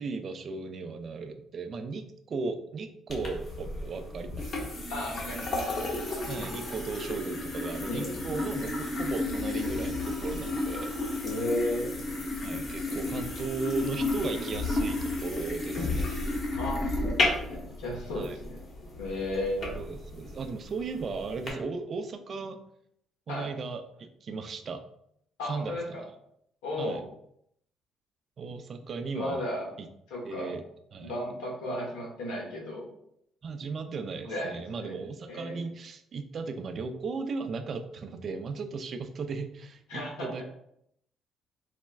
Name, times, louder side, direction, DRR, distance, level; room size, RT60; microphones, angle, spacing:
voice 1, 0.0-4.7 6.3-10.9 12.4-16.1 18.1-18.4 19.7-22.6 23.3-24.8 25.5-26.1 26.8-27.0 28.4-29.4 29.8-29.9 30.2-30.6 30.9-31.1 33.4-40.4, right 4 dB, 55° right, 8 dB, 0.4 m, -36 dB
sound 1, 3.1-21.5, left 2 dB, 60° left, 1.0 m, -33 dB
voice 2, 4.9-6.4 7.9-8.2 11.2-12.0 16.5-18.6 19.0-19.8 23.3-23.5 25.4-26.1 26.6-27.0 29.1-29.7 30.1-30.5 31.0-32.9 34.2-34.9 35.3-35.7 39.9-40.4, left 1 dB, 85° left, -2 dB, 1.0 m, -34 dB
4.2 x 2.1 x 2.3 m, 0.73 s
hypercardioid pair, 55°, 0 cm